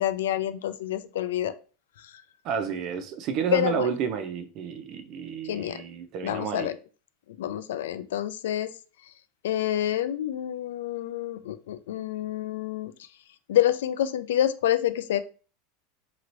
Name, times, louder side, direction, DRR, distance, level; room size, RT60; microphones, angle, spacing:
voice 1, 0.0-1.5 2.0-2.2 3.5-3.9 5.4-5.8 6.2-6.8 7.3-8.7 9.0-9.1 9.4-13.1 13.5-15.2, left 11 dB, 85° left, 0.3 m, -28 dB
voice 2, 2.4-6.7, right 7 dB, 50° right, 0.5 m, -30 dB
3.0 x 2.8 x 2.6 m
supercardioid pair, 120°, 0 cm